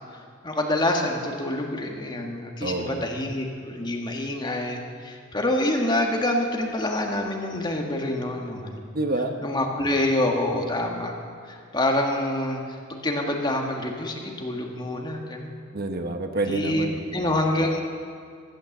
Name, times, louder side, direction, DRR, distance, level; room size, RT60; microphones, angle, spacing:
voice 1, 0.1-8.9 9.4-11.2 11.5-15.6 16.5-16.9 17.1-17.8, left 1 dB, 20° left, 1 dB, 1.6 m, -27 dB
voice 2, 2.6-3.1 8.9-9.4 9.8-9.9 15.7-17.4, right 2 dB, 50° right, 6 dB, 1.0 m, -28 dB
14.5 x 12.0 x 7.2 m, 2.2 s
head